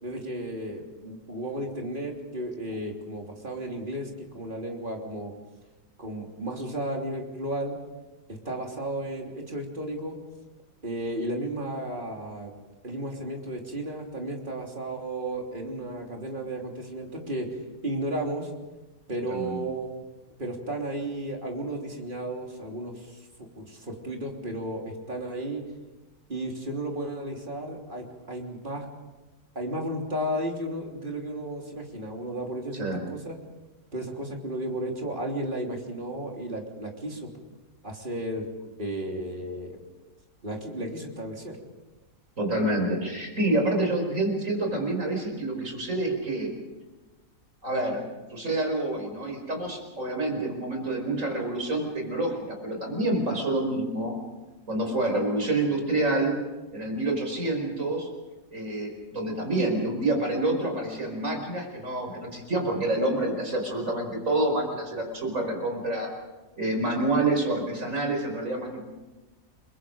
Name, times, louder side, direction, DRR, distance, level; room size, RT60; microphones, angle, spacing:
voice 1, 0.0-5.3 6.0-7.8 8.3-10.2 10.8-12.5 12.8-17.5 17.8-18.5 19.1-19.9 20.4-25.6 26.3-28.9 29.6-33.4 33.9-37.3 37.8-38.5 38.8-39.8 40.4-41.6, right 1 dB, 30° right, 0 dB, 3.5 m, -33 dB
voice 2, 19.3-19.6 32.7-33.0 42.4-46.5 47.6-48.0 48.3-54.1 54.7-56.4 56.7-58.1 58.5-66.1 66.6-68.8, right 2 dB, 50° right, 3 dB, 5.4 m, -27 dB
29.5 x 22.5 x 5.1 m, 1.2 s
omnidirectional pair, 1.7 m